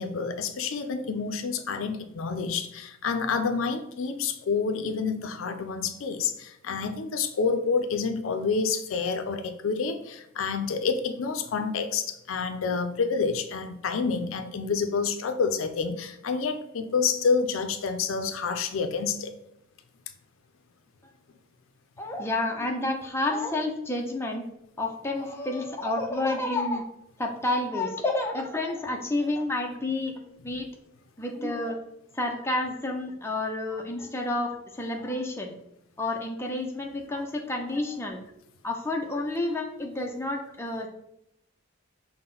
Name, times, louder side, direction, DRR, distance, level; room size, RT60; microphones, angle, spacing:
voice 1, 0.0-19.3, left 5 dB, 75° left, 8 dB, 0.4 m, -28 dB
voice 2, 22.0-24.4 24.8-26.8 27.2-30.7 31.2-31.8 32.1-35.5 36.0-38.2 38.6-40.9, left 2 dB, 10° left, 1 dB, 0.4 m, -30 dB
5.7 x 2.1 x 3.8 m, 0.80 s
head